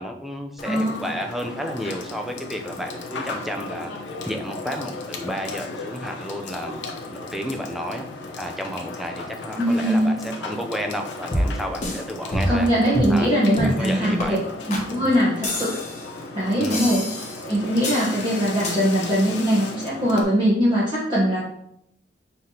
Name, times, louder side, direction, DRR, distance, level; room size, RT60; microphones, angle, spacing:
voice 1, 0.0-3.9 4.3-8.1 8.4-12.7 13.1-14.4 16.6-16.8, equal, ahead, 3 dB, 0.5 m, -32 dB
Water / Water tap faucet / Sink (filling or washing), 0.6-20.2, left 3 dB, 85° left, 0.7 m, -36 dB
voice 2, 0.6-1.0 9.6-10.1 12.5-14.4 14.7-15.7 16.3-17.0 17.5-21.4, equal, 25° right, -7 dB, 1.0 m, -21 dB
sound 1, 11.3-12.0 12.3-12.7 12.9-13.2 13.6-13.8 14.2-14.3 14.7-14.9 15.4-16.1 16.7-17.4 17.8-18.1 18.6-18.8, left 1 dB, 40° left, 1.0 m, -26 dB
5.8 x 3.3 x 2.8 m, 0.75 s
head